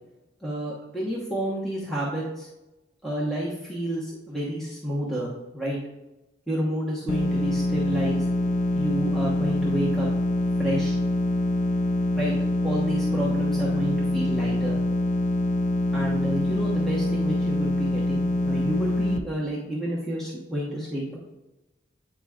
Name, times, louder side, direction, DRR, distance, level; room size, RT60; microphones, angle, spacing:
voice 1, 0.4-2.5 3.0-5.8 6.5-8.2 8.7-10.1 10.6-11.0 12.1-12.3 12.6-14.8 15.9-21.2, equal, ahead, -7 dB, 1.1 m, -30 dB
sound 1, 7.1-19.2, left 1 dB, 40° left, 0.4 m, -25 dB
8.8 x 4.9 x 2.4 m, 0.99 s
head